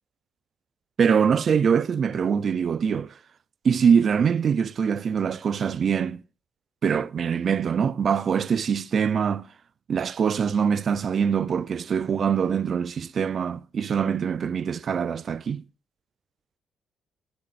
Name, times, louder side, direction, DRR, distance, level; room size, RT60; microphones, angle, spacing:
voice 1, 1.0-3.1 3.6-6.2 6.8-9.5 9.9-15.6, right 7 dB, 50° right, 0.6 m, -23 dB
20.0 x 8.1 x 2.6 m
cardioid pair, 90°, 0 cm